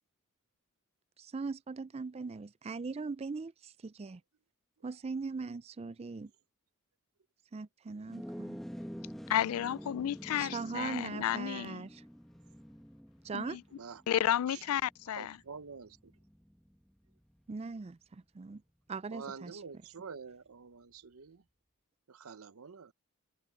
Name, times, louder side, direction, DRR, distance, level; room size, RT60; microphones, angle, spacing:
voice 1, 1.2-4.2 4.8-6.3 7.5-8.6 10.4-12.0 13.2-13.6 17.5-18.6 18.9-19.6, right 4 dB, 30° right, 0.3 m, -40 dB
sound 1, 8.0-17.6, equal, ahead, 1.2 m, -48 dB
voice 2, 9.3-11.9 13.3-13.6 14.1-15.4, left 10 dB, 75° left, 0.3 m, -32 dB
voice 3, 15.1-16.1 19.1-21.4 22.1-22.9, right 5 dB, 75° right, 0.8 m, -47 dB
open air
head